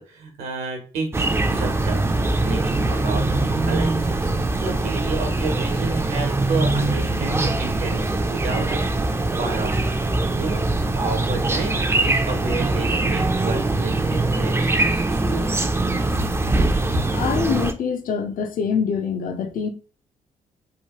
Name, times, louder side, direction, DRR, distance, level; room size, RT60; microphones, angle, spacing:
voice 1, 0.1-2.0 2.4-3.2 3.7-10.0 10.4-10.6 10.9-15.7, right 4 dB, 75° right, 1.0 m, -31 dB
sound 1, 1.1-17.7, right 2 dB, 15° right, 0.4 m, -22 dB
voice 2, 17.1-19.7, left 6 dB, 60° left, 0.6 m, -24 dB
3.1 x 2.2 x 2.9 m
hypercardioid pair, 50°, 16 cm